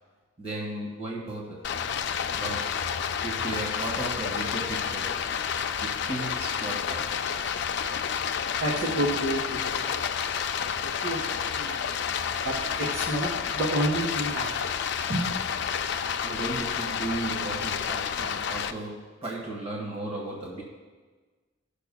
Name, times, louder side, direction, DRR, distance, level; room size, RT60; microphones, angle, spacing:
voice 1, 0.4-1.7 2.4-2.9 3.2-5.2 5.8-7.2 16.2-20.6, right 2 dB, 30° right, -4 dB, 1.4 m, -35 dB
Stream, 1.6-18.7, left 7 dB, 60° left, 0.4 m, -30 dB
voice 2, 8.6-10.1 10.8-12.0 12.4-14.5 15.1-15.2, right 1 dB, 65° right, -4 dB, 1.6 m, -30 dB
17.0 x 6.7 x 2.2 m, 1.4 s
head